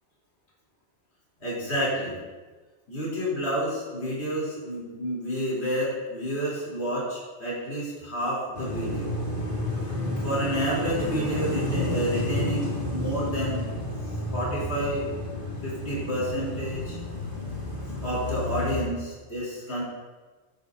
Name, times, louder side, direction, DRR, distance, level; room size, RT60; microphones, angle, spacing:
voice 1, 1.4-2.2 2.9-9.1 10.2-13.7 14.3-15.1 15.6-17.0 18.0-19.8, equal, 65° left, -6 dB, 3.8 m, -29 dB
sound 1, 8.5-18.8, left 1 dB, 50° left, 2.7 m, -31 dB
15.5 x 12.0 x 2.7 m, 1.3 s
omnidirectional pair, 1.2 m